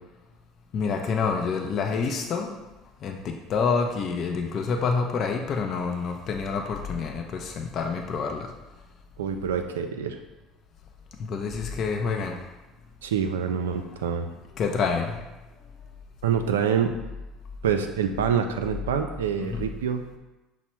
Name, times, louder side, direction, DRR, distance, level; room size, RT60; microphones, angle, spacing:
voice 1, 0.7-2.6 3.0-8.5 11.3-12.4 14.6-15.2 19.4-19.7, left 5 dB, 50° left, 3 dB, 0.5 m, -27 dB
voice 2, 9.2-10.2 13.0-14.3 16.2-16.9 17.6-20.0, right 7 dB, 90° right, 6 dB, 0.3 m, -26 dB
6.0 x 2.0 x 4.3 m, 1.1 s
hypercardioid pair, 75°, 0 cm